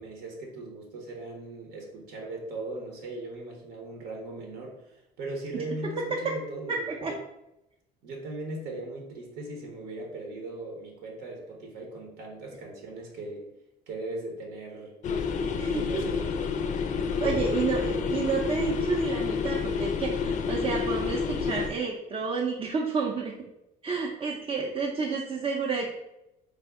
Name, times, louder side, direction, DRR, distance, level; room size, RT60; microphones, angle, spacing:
voice 1, 0.0-7.0 8.0-13.5 13.9-14.9 15.4-16.4 17.2-17.6, right 2 dB, 85° right, 0 dB, 0.9 m, -38 dB
voice 2, 6.7-7.1 15.6-16.0 17.2-23.3 23.8-25.9, right 4 dB, 30° right, -2 dB, 0.4 m, -30 dB
sound 1, 15.0-21.7, left 6 dB, 45° left, 0.4 m, -29 dB
3.4 x 2.0 x 3.5 m, 0.89 s
cardioid pair, 110°, 17 cm